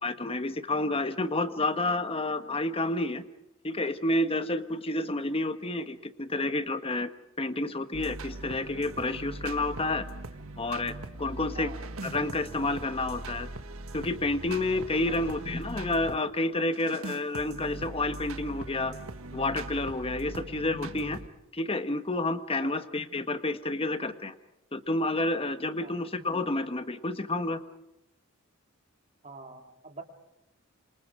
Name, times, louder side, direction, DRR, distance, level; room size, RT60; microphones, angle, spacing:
voice 1, 0.0-3.2 3.6-7.1 7.4-10.0 10.6-10.9 11.2-11.7 12.0-13.5 13.9-18.9 19.3-21.2 21.5-24.3 24.7-27.6, left 2 dB, 25° left, 10 dB, 1.3 m, -29 dB
sound 1, 7.9-16.2 16.7-21.3, right 2 dB, 75° right, 1.6 m, -41 dB
voice 2, 29.2-30.0, right 3 dB, 35° right, 3 dB, 3.3 m, -45 dB
27.5 x 27.0 x 4.9 m, 0.88 s
head